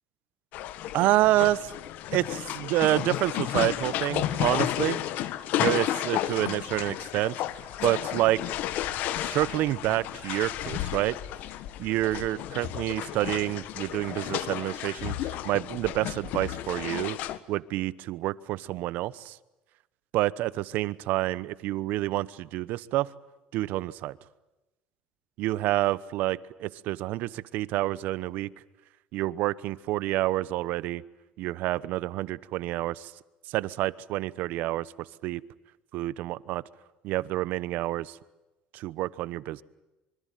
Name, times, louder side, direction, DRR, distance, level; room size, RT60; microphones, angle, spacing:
sound 1, 0.5-17.4, left 13 dB, 65° left, 1.5 m, -32 dB
voice 1, 0.9-1.7 2.1-5.0 5.6-7.4 7.8-8.4 9.2-11.2 11.8-17.2 17.5-19.4 20.1-23.1 23.5-24.2 25.4-28.5 29.1-31.0 31.4-33.1 33.5-35.4 35.9-36.6 37.0-38.2 38.7-39.6, right 16 dB, 70° right, 19 dB, 1.0 m, -28 dB
26.0 x 25.0 x 9.2 m, 1.0 s
cardioid pair, 135°, 3 cm